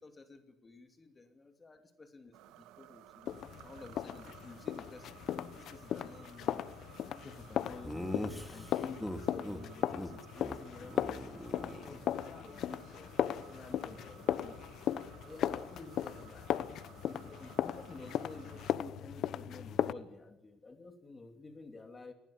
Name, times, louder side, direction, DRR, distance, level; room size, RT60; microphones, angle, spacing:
voice 1, 0.0-3.4 3.6-5.2 5.6-6.7 7.1-8.2 8.5-11.4 11.8-14.7 15.2-16.6 17.1-22.1, left 3 dB, 25° left, 8 dB, 2.7 m, -52 dB
sound 1, 2.3-18.7, right 13 dB, 75° right, 1.5 m, -57 dB
sound 2, 3.3-19.9, left 10 dB, 60° left, 1.0 m, -37 dB
Laughter, 7.8-9.6 9.9-10.1 10.4-10.6 10.8-12.4, left 1 dB, 5° left, 2.9 m, -41 dB
19.5 x 16.5 x 8.8 m, 0.94 s
supercardioid pair, 75°, 0 cm